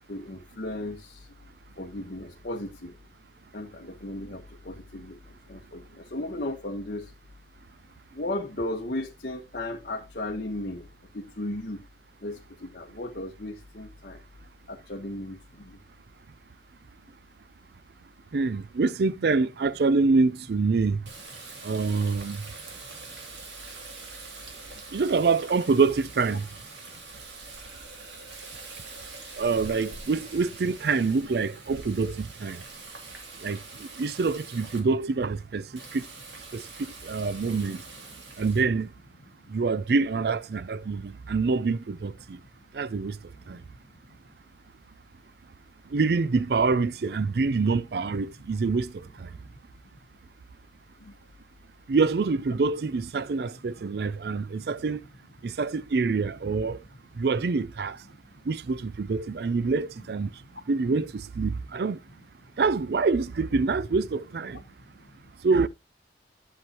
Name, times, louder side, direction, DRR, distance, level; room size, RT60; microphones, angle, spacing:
voice 1, 0.1-1.3 1.8-2.9 3.5-7.1 8.1-10.9 11.1-11.8 12.2-14.2 14.7-15.8 51.0-51.1 60.5-60.6 64.5-64.6 65.0-65.1, left 1 dB, 55° left, 1.1 m, -36 dB
voice 2, 18.3-21.0 21.6-22.4 24.9-26.5 29.4-32.6 33.4-35.7 35.9-36.0 36.5-37.8 38.4-38.9 39.5-42.4 42.7-43.2 43.5-43.6 45.9-49.3 51.9-55.0 55.4-56.8 57.2-58.0 58.5-60.3 60.7-62.0 62.6-64.6 65.4-65.7, right 4 dB, 60° right, 0.4 m, -26 dB
Water tap faucet, 21.0-34.8 35.8-38.6, right 3 dB, 85° right, 2.6 m, -44 dB
11.0 x 7.1 x 2.9 m
head